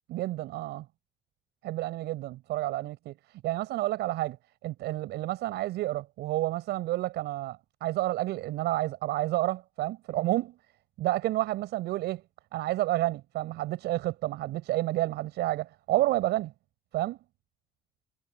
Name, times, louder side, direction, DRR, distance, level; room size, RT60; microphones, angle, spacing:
voice 1, 0.1-0.9 1.6-4.4 4.6-10.6 11.0-12.2 12.5-16.5 16.9-17.2, right 16 dB, 80° right, 7.8 m, -30 dB
cardioid pair, 110°, 17 cm